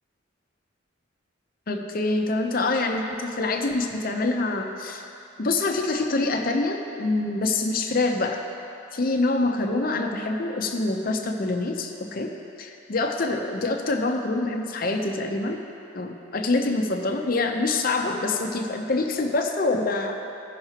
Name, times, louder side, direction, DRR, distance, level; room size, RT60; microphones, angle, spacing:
voice 1, 1.7-5.0 5.4-8.4 8.9-12.3 12.6-15.6 15.9-20.2, left 2 dB, 45° left, 3 dB, 0.7 m, -25 dB
16.0 x 5.8 x 2.9 m, 2.7 s
head